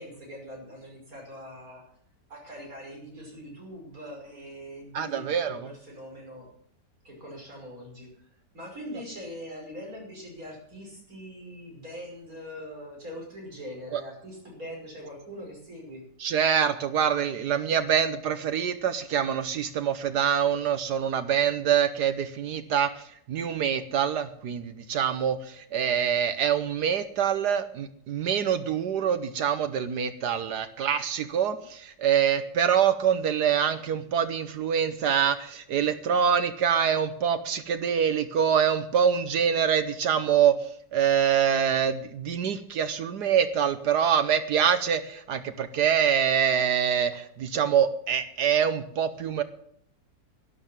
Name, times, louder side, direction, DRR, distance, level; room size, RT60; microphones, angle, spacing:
voice 1, 0.0-1.8 2.3-6.5 7.0-8.1 8.5-16.0, equal, 50° right, -1 dB, 6.2 m, -42 dB
voice 2, 4.9-5.7 13.9-14.0 16.2-49.4, right 8 dB, 70° right, 11 dB, 1.4 m, -25 dB
12.0 x 11.0 x 7.4 m, 0.66 s
omnidirectional pair, 1.9 m